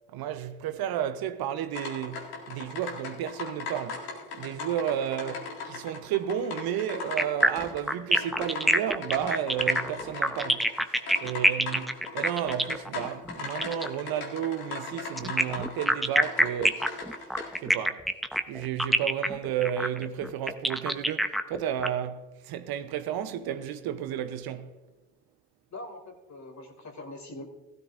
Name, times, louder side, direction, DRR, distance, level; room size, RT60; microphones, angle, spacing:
voice 1, 0.1-4.1 4.4-10.7 11.2-17.0 17.6-18.0 18.3-24.8, right 10 dB, 70° right, 0.8 m, -32 dB
sound 1, 1.7-17.7, left 4 dB, 75° left, 2.1 m, -39 dB
voice 2, 5.3-5.6 25.7-27.5, left 2 dB, 45° left, 2.5 m, -43 dB
sound 2, 7.2-13.9 15.2-21.9, equal, ahead, 0.8 m, -26 dB
16.0 x 13.0 x 2.6 m
hypercardioid pair, 40°, 38 cm